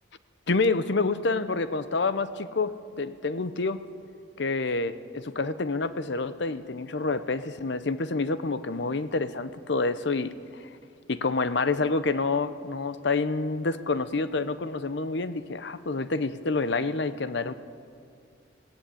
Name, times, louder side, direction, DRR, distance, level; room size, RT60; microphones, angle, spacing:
voice 1, 0.5-3.8 4.4-10.7 11.1-17.5, left 3 dB, 60° left, 12 dB, 0.8 m, -28 dB
19.5 x 16.5 x 8.5 m, 2.4 s
head